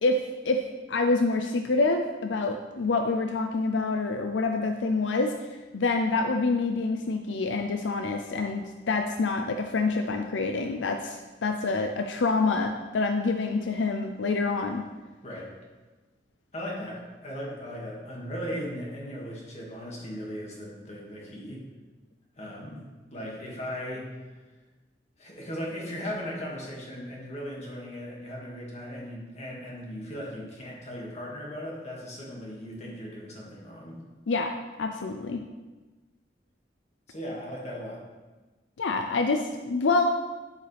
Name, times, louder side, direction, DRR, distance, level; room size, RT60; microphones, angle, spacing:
voice 1, 0.0-5.3 5.7-14.8 34.3-35.4 38.8-40.1, left 3 dB, 80° left, 5 dB, 0.5 m, -27 dB
voice 2, 16.5-21.6 22.3-22.8 23.1-24.3 25.2-34.0 37.1-38.0, equal, 35° left, -3 dB, 2.1 m, -37 dB
9.0 x 7.9 x 3.4 m, 1.3 s
head